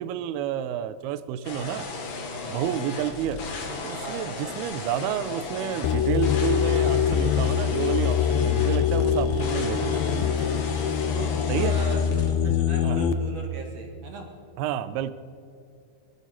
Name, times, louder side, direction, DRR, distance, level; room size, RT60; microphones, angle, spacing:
voice 1, 0.0-1.9 2.5-3.4 3.8-10.3 11.5-11.8 12.8-13.0 14.6-15.1, right 10 dB, 80° right, 14 dB, 2.3 m, -30 dB
sound 1, 1.4-12.3, left 3 dB, 60° left, 3.6 m, -35 dB
voice 2, 4.0-4.3 11.1-14.3, right 3 dB, 50° right, 1 dB, 2.4 m, -37 dB
sound 2, 5.8-13.1, left 8 dB, 80° left, 2.2 m, -24 dB
23.0 x 12.5 x 4.4 m, 2.5 s
omnidirectional pair, 5.0 m